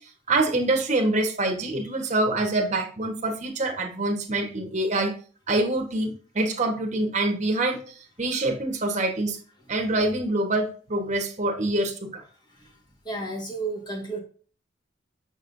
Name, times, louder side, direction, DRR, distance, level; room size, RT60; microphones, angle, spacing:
voice 1, 0.3-5.1 5.5-7.8 8.2-9.4 9.7-12.2, right 2 dB, 35° right, 2 dB, 1.2 m, -25 dB
voice 2, 13.0-14.2, right 3 dB, 20° left, 0 dB, 1.5 m, -31 dB
6.3 x 6.2 x 2.6 m, 0.40 s
head